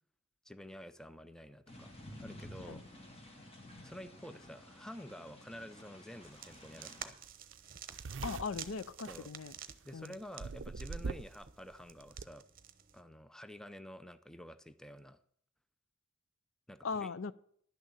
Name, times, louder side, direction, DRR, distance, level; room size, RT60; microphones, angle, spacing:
voice 1, 0.4-1.9 2.2-2.8 3.8-7.2 9.1-9.3 9.8-12.4 12.9-15.2 16.7-17.1, equal, 5° left, 12 dB, 0.5 m, -50 dB
sound 1, 1.7-7.1, left 1 dB, 30° left, 1.7 m, -53 dB
sound 2, 6.2-13.0, right 9 dB, 45° right, 0.9 m, -51 dB
sound 3, 7.2-7.3 7.5-9.9 10.4-11.5 11.7-12.2, right 4 dB, 60° right, 0.5 m, -42 dB
voice 2, 8.2-9.5 9.9-10.2 16.8-17.3, left 5 dB, 75° left, 16 dB, 0.5 m, -39 dB
11.5 x 6.5 x 8.9 m, 0.64 s
head